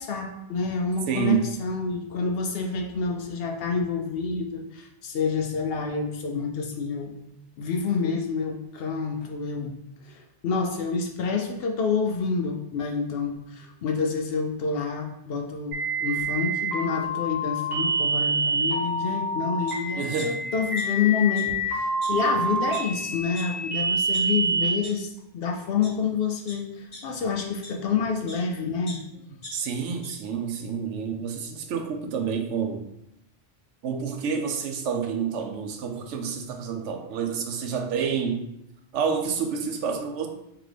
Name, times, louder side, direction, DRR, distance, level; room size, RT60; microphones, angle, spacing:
voice 1, 0.0-7.1 7.6-9.8 10.0-29.0, left 5 dB, 65° left, 3 dB, 0.7 m, -28 dB
voice 2, 1.1-1.4 20.0-20.3 29.5-32.8 33.8-38.5 38.9-40.3, right 7 dB, 90° right, 5 dB, 0.9 m, -28 dB
sound 1, 15.7-24.7, right 2 dB, 50° right, 1.6 m, -27 dB
sound 2, 19.7-19.8 20.2-21.1 21.3-21.4 22.0-22.1 22.7-22.8 23.3-23.4 23.9-24.2 24.8-24.9 25.6-25.9 26.5-28.4 28.9-30.1 30.5-30.6, left 2 dB, 35° left, 0.9 m, -42 dB
3.7 x 2.9 x 3.3 m, 0.82 s
omnidirectional pair, 1.2 m